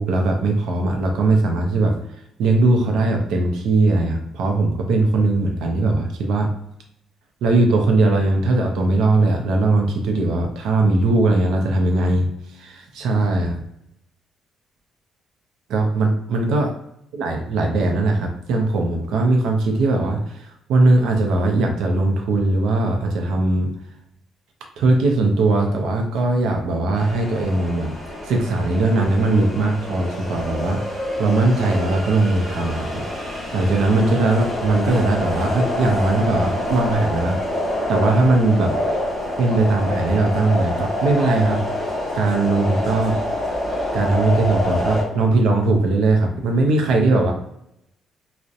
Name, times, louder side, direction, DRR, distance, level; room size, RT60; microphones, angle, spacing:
voice 1, 0.0-1.9 2.4-6.5 7.4-13.6 15.7-16.7 17.1-23.7 24.8-27.9 28.2-30.8 31.2-33.3 33.5-37.4 37.9-38.7 39.4-41.6 42.1-43.2 43.9-47.3, right 2 dB, 70° right, 2 dB, 0.4 m, -19 dB
sound 1, 27.0-45.0, left 1 dB, 5° left, 0.8 m, -26 dB
2.6 x 2.0 x 2.4 m, 0.78 s
cardioid pair, 175°, 0 cm